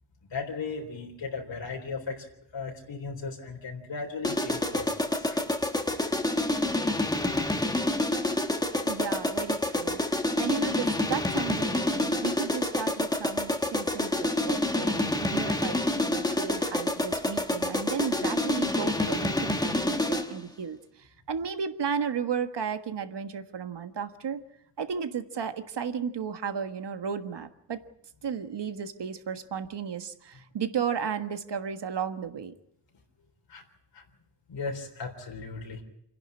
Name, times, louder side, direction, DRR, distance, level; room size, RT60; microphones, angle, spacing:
voice 1, 0.3-2.2 2.5-5.4 5.7-5.8 33.5-33.6 33.9-34.0 34.5-35.8, left 4 dB, 80° left, 1 dB, 3.8 m, -36 dB
sound 1, 4.2-20.4, left 1 dB, 10° left, 1.2 m, -28 dB
voice 2, 8.8-10.0 10.4-20.8 21.3-24.4 24.8-27.8 28.2-32.5, right 7 dB, 70° right, 8 dB, 1.6 m, -34 dB
28.0 x 11.0 x 9.7 m, 0.78 s
wide cardioid pair, 155°, 43 cm